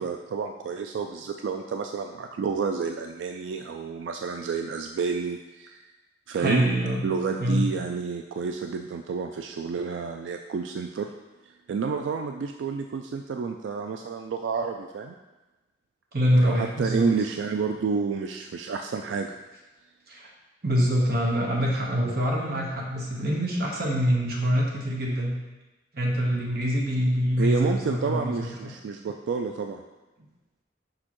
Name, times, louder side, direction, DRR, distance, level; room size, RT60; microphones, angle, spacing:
voice 1, 0.0-5.8 6.3-6.7 7.0-11.1 11.4-15.2 16.4-19.3 27.4-29.8, right 5 dB, 85° right, 5 dB, 0.3 m, -30 dB
voice 2, 6.4-7.0 7.4-7.7 16.1-17.1 20.1-20.3 20.6-25.4 25.9-28.7, equal, 55° right, -2 dB, 1.2 m, -25 dB
6.3 x 5.4 x 3.0 m, 1.1 s
head